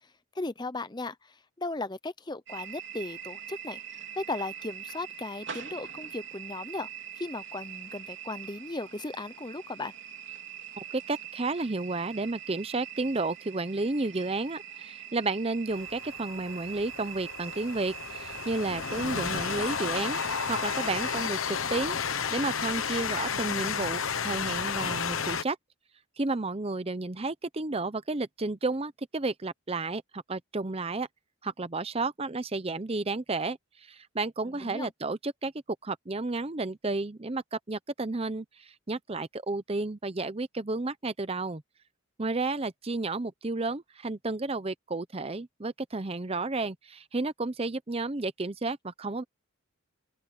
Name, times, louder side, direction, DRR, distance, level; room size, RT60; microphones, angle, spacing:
voice 1, 0.0-3.8 4.2-6.9 7.1-9.9 34.6-34.9, left 2 dB, 20° left, 0.7 m, -36 dB
sound 1, 2.5-21.3, right 8 dB, 55° right, 4.4 m, -43 dB
voice 2, 10.8-20.2 20.5-22.0 22.3-25.6 26.2-31.1 31.4-35.5 35.8-41.6 42.2-49.2, right 3 dB, 25° right, 0.6 m, -32 dB
Train, 15.7-25.4, left 6 dB, 70° left, 1.1 m, -32 dB
open air
head